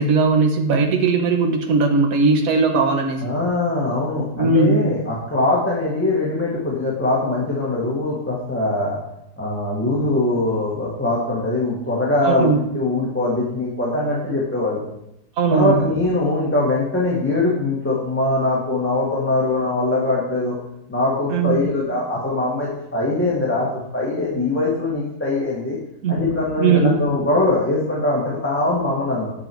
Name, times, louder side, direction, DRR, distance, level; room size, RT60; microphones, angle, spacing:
voice 1, 0.0-3.2 4.4-4.9 12.3-12.6 15.4-15.7 21.3-21.7 26.0-26.2 26.6-27.0, right 4 dB, 65° right, 4 dB, 1.5 m, -18 dB
voice 2, 3.2-9.0 9.4-14.9 15.5-20.6 20.9-25.8 26.1-29.3, left 2 dB, 10° left, -6 dB, 1.6 m, -22 dB
10.0 x 6.1 x 4.6 m, 0.82 s
omnidirectional pair, 1.6 m